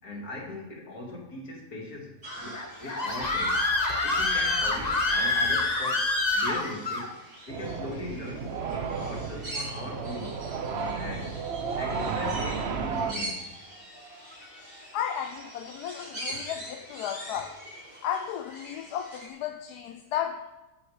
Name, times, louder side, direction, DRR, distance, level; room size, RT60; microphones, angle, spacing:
voice 1, 0.0-3.6 4.0-7.2 7.5-10.4 10.9-11.4 11.8-13.5 16.3-16.7 17.7-17.8, left 2 dB, 60° left, 3.1 m, -39 dB
sound 1, 2.2-19.3, right 1 dB, 30° right, 4.3 m, -43 dB
Screaming, 2.5-7.1, left 2 dB, 25° left, 1.2 m, -26 dB
sound 2, 7.5-13.1, right 5 dB, 50° right, 0.9 m, -33 dB
voice 2, 14.2-17.6 18.0-20.5, left 9 dB, 75° left, 1.2 m, -34 dB
14.0 x 10.5 x 5.1 m
omnidirectional pair, 1.8 m